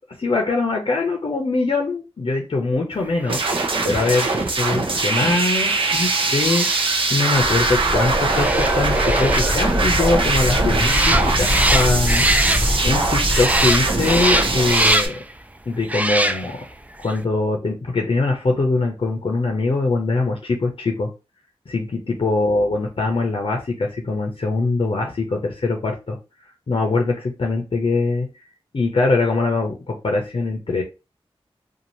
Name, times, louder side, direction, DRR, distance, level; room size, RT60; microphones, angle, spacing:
voice 1, 0.2-4.3 4.6-15.2 15.7-16.6 17.0-21.1 21.7-26.2 26.7-28.3 28.7-30.8, left 3 dB, 60° left, 1 dB, 0.6 m, -22 dB
sound 1, 3.2-13.0 13.3-15.3 15.8-16.7 17.0-17.2, right 1 dB, 15° right, 0.3 m, -25 dB
sound 2, 3.3-15.1, right 3 dB, 60° right, 0.7 m, -22 dB
sound 3, 7.3-15.0, left 1 dB, 15° left, 0.8 m, -24 dB
2.6 x 2.4 x 3.0 m, 0.28 s
wide cardioid pair, 55°, 10 cm